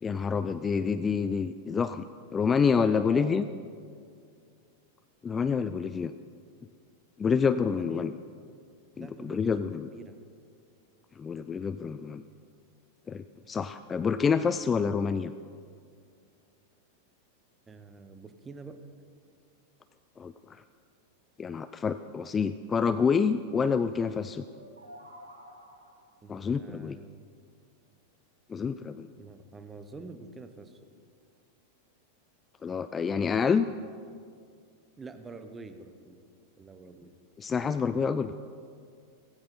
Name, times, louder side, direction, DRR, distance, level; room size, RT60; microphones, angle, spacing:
voice 1, 0.0-2.1 2.3-3.5 5.2-6.1 7.2-8.1 9.0-9.9 11.2-12.2 13.1-15.3 20.2-20.3 21.4-24.4 26.3-27.0 28.5-29.1 32.6-33.7 37.4-38.3, left 6 dB, 20° left, 12 dB, 0.4 m, -27 dB
voice 2, 2.9-3.4 7.4-8.1 9.0-10.2 17.7-18.8 26.2-27.3 29.2-30.8 35.0-36.2 36.6-37.1, right 3 dB, 15° right, 9 dB, 1.0 m, -46 dB
sound 1, 24.4-26.2, equal, 80° right, 1.6 m, -50 dB
16.0 x 16.0 x 4.3 m, 2.3 s
figure-of-eight pair, 90°, 0 cm